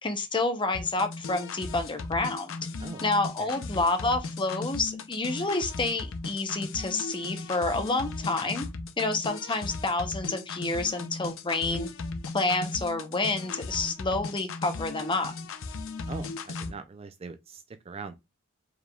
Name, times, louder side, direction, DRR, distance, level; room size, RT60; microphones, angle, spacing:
voice 1, 0.0-2.5 3.0-8.7 9.0-11.9 12.3-15.3, left 3 dB, 20° left, 0.7 m, -29 dB
sound 1, 0.7-16.7, left 3 dB, 60° left, 0.6 m, -37 dB
voice 2, 16.1-18.2, right 4 dB, 25° right, 0.3 m, -41 dB
4.8 x 3.4 x 2.3 m
head